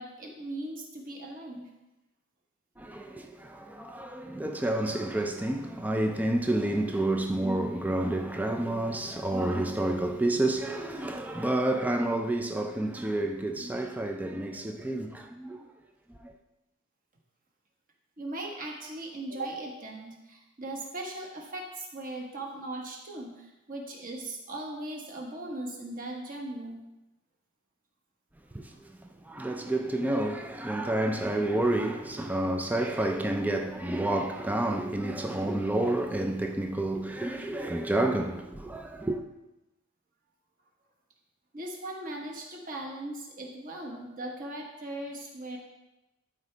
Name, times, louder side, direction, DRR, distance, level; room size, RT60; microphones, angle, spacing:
voice 1, 0.0-1.7 18.2-26.9 41.5-45.6, right 1 dB, 40° right, 1.3 m, -39 dB
voice 2, 2.8-15.6 16.2-16.3 28.5-39.2, right 1 dB, 5° right, 0.4 m, -29 dB
11.5 x 4.8 x 3.4 m
head